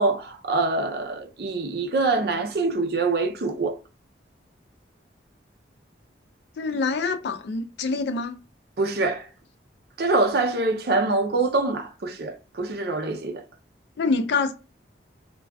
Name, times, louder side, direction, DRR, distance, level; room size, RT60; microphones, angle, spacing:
voice 1, 0.0-3.8 8.8-9.3 10.0-13.4, right 3 dB, 55° right, 0.5 m, -24 dB
voice 2, 6.6-8.4 14.0-14.5, left 4 dB, 65° left, 0.4 m, -25 dB
2.3 x 2.2 x 3.4 m
head